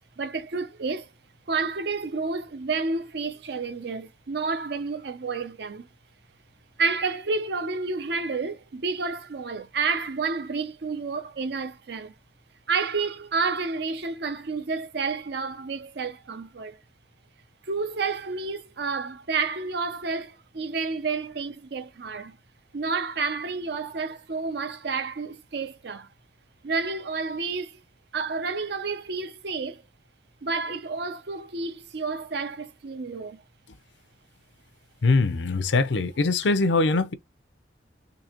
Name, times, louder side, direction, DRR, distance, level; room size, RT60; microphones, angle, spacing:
voice 1, 0.2-1.1 1.5-5.9 6.8-12.1 12.7-16.8 17.6-22.4 22.7-26.1 26.6-27.8 28.1-29.8 30.4-33.4, right 4 dB, 65° right, 0.6 m, -30 dB
voice 2, 35.0-37.1, left 3 dB, 80° left, 0.6 m, -22 dB
3.8 x 2.8 x 2.9 m
head